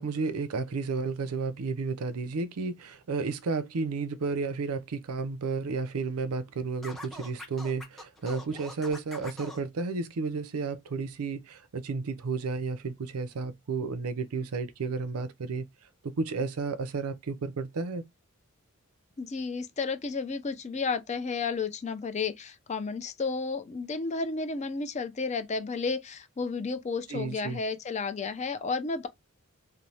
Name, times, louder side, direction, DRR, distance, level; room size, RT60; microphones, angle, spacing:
voice 1, 0.0-15.7 16.0-18.1 27.1-27.6, right 4 dB, 85° right, 0.5 m, -32 dB
Scratching (performance technique), 6.8-9.6, left 1 dB, ahead, 0.8 m, -43 dB
voice 2, 19.2-29.1, left 4 dB, 30° left, 0.4 m, -32 dB
3.0 x 2.0 x 2.7 m
head